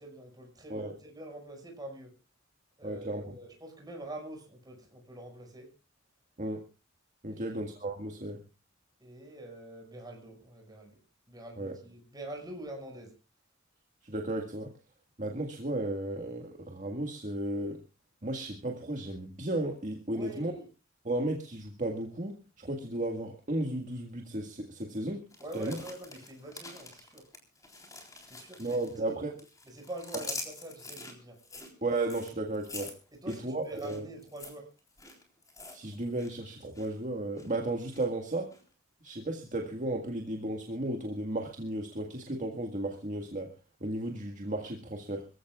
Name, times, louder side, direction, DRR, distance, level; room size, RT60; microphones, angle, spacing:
voice 1, 0.0-2.1 2.8-5.7 7.3-7.6 9.0-11.0 11.3-13.1 20.1-20.7 25.4-27.2 28.2-29.2 29.7-31.4 33.1-34.7, right 1 dB, 20° right, 2 dB, 5.8 m, -45 dB
voice 2, 2.8-3.3 6.4-6.6 7.2-8.4 11.6-11.8 14.0-14.7 15.2-17.8 18.2-20.5 21.1-25.3 25.5-25.8 28.6-29.4 31.8-32.9 33.3-34.1 35.7-38.5 39.0-43.5 43.8-45.3, right 1 dB, 40° right, 3 dB, 1.8 m, -34 dB
sound 1, 25.3-29.1 29.4-36.3 36.6-36.9 37.4-38.0 38.5-38.6, left 3 dB, 15° left, 3.8 m, -45 dB
25.5 x 15.5 x 2.4 m, 0.33 s
head